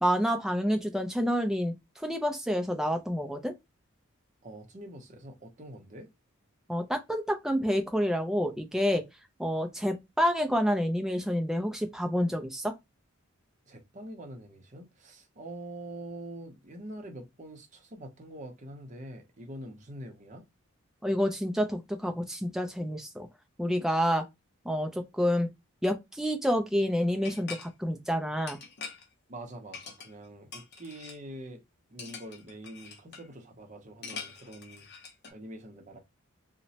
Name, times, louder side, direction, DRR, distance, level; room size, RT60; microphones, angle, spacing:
voice 1, 0.0-1.7 2.0-3.5 6.7-9.0 9.4-12.7 21.0-23.3 23.6-24.3 24.7-25.5 25.8-28.6, equal, ahead, 0.3 m, -28 dB
voice 2, 4.4-6.1 13.7-20.4 29.3-31.6 31.9-34.9 35.3-36.0, right 1 dB, 35° right, 0.6 m, -45 dB
sound 1, 27.2-27.7 28.5-29.1 29.7-30.2 30.5-31.2 32.0-33.3 34.0-35.3, left 5 dB, 50° left, 0.6 m, -44 dB
2.9 x 2.1 x 2.7 m
head